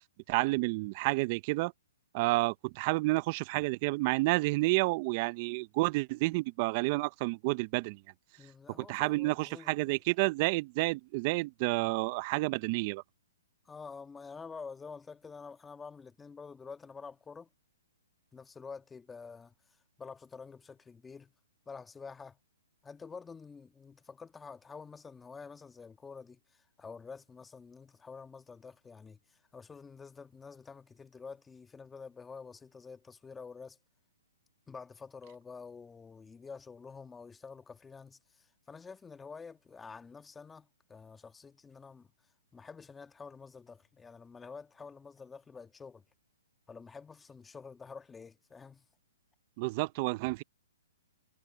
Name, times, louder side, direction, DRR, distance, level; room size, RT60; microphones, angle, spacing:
voice 1, 0.3-1.7 2.1-8.0 8.8-13.0 49.6-50.4, right 23 dB, 35° right, 0.5 m, -30 dB
voice 2, 8.4-10.0 13.6-17.5 18.3-21.3 21.6-22.4 22.8-33.8 34.7-42.1 42.5-46.0 46.7-48.9, left 5 dB, 10° left, 1.5 m, -48 dB
hypercardioid pair, 145°, 0 cm